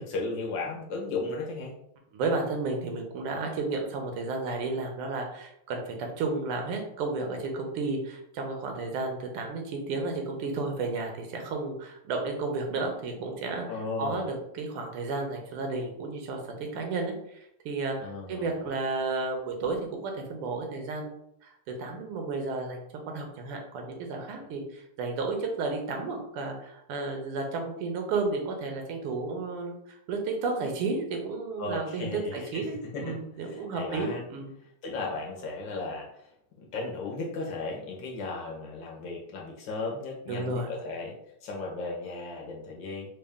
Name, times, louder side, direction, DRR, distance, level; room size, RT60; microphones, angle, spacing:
voice 1, 0.0-1.7 13.7-14.2 18.0-18.6 31.6-32.6 32.9-34.2 34.8-36.3 36.6-41.2 41.4-43.1, left 3 dB, 70° left, -1 dB, 1.2 m, -35 dB
voice 2, 2.1-13.6 14.0-34.5 40.3-40.7, right 3 dB, 85° right, 2 dB, 1.7 m, -32 dB
4.2 x 2.2 x 3.4 m, 0.75 s
omnidirectional pair, 2.4 m